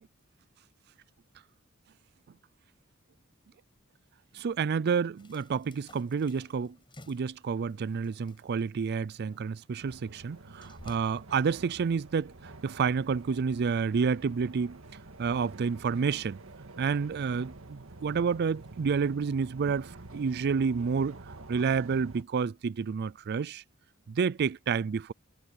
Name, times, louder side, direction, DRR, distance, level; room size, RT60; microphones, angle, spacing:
voice 1, 4.3-6.8 7.1-12.3 12.6-14.8 15.2-16.4 16.8-21.2 21.5-23.6 24.1-25.1, right 5 dB, 50° right, 0.4 m, -29 dB
sound 1, 5.2-11.2, left 1 dB, 25° left, 6.3 m, -57 dB
sound 2, 9.8-22.2, right 2 dB, 80° right, 1.8 m, -48 dB
head